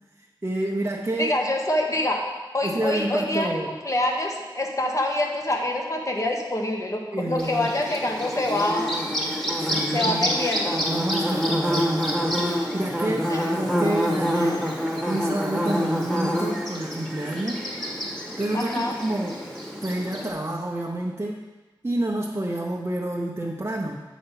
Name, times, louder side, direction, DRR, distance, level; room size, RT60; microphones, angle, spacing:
voice 1, 0.4-1.4 2.6-3.7 7.1-7.7 9.6-10.3 10.9-12.3 12.7-14.8 15.1-17.7 18.2-19.5 19.8-21.4 21.8-24.0, right 1 dB, 30° right, -2 dB, 0.6 m, -28 dB
voice 2, 1.2-2.2 2.5-3.6 3.8-8.9 9.9-10.8 13.3-13.5 14.3-14.6 18.5-18.9, left 1 dB, 40° left, 1 dB, 1.2 m, -26 dB
Bird / Buzz, 7.4-20.3, equal, 5° left, 1.4 m, -27 dB
7.8 x 5.0 x 5.7 m, 1.2 s
wide cardioid pair, 75°, 9 cm